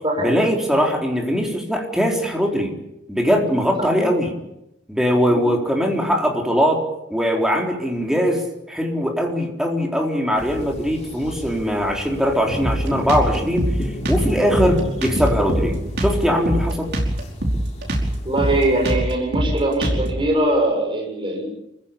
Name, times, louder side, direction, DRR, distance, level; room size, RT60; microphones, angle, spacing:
voice 1, 0.2-2.7 3.1-4.3 4.9-6.8 7.1-13.7 14.1-16.9, equal, 5° right, 0 dB, 4.1 m, -21 dB
sound 1, 10.4-18.9, equal, 35° left, 3.8 m, -33 dB
Drum kit, 12.6-20.3, right 1 dB, 60° right, 5.2 m, -23 dB
voice 2, 18.3-21.4, right 1 dB, 25° right, 0 dB, 6.8 m, -21 dB
27.5 x 16.0 x 8.7 m, 0.87 s
head